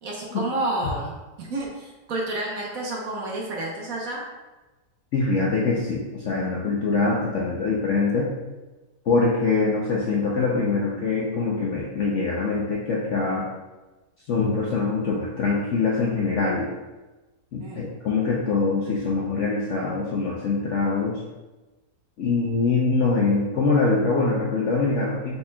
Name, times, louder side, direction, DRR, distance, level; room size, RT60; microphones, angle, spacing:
voice 1, 0.0-4.2 17.6-17.9, right 2 dB, 60° right, -2 dB, 1.1 m, -30 dB
voice 2, 5.1-8.3 9.1-13.5 14.3-16.7 17.5-21.2 22.2-25.4, left 4 dB, 65° left, -4 dB, 0.7 m, -23 dB
5.3 x 4.3 x 2.2 m, 1.1 s
omnidirectional pair, 1.9 m